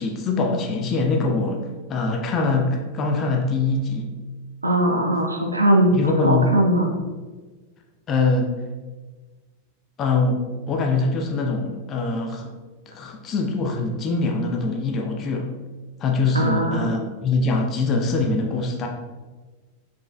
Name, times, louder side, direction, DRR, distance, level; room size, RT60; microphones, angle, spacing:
voice 1, 0.0-1.6 1.9-4.1 6.0-6.6 8.1-8.5 10.0-12.5 12.9-15.5 16.0-18.9, left 3 dB, 30° left, 2 dB, 0.5 m, -23 dB
voice 2, 4.6-5.9 6.2-6.9 16.3-16.9, right 1 dB, 80° right, 2 dB, 0.6 m, -20 dB
4.7 x 4.2 x 2.3 m, 1.3 s
figure-of-eight pair, 90°, 0 cm